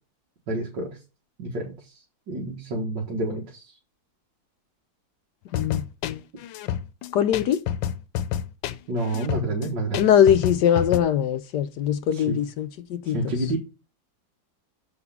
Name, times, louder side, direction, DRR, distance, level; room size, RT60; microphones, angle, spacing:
voice 1, 0.5-0.9 1.4-1.7 2.3-3.7 8.9-10.1 12.1-12.4 13.0-13.6, right 2 dB, 70° right, 2.2 m, -28 dB
sound 1, 5.5-11.0, left 10 dB, 85° left, 1.4 m, -29 dB
voice 2, 5.5-6.2 7.1-7.6 10.0-13.3, left 9 dB, 70° left, 1.1 m, -22 dB
7.0 x 4.7 x 5.8 m
omnidirectional pair, 2.0 m